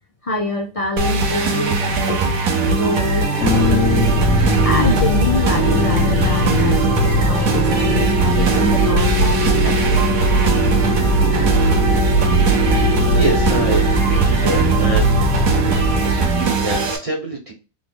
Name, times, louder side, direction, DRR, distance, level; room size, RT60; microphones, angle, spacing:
voice 1, 0.2-3.6 4.4-10.0, left 2 dB, 60° left, 2 dB, 0.3 m, -26 dB
sound 1, 1.0-17.0, right 3 dB, 80° right, 1.2 m, -20 dB
sound 2, 3.4-16.8, right 1 dB, 90° left, 1.3 m, -19 dB
voice 2, 13.1-15.5 16.0-17.5, right 2 dB, 30° right, -1 dB, 0.7 m, -26 dB
3.7 x 3.0 x 2.2 m, 0.32 s
omnidirectional pair, 1.5 m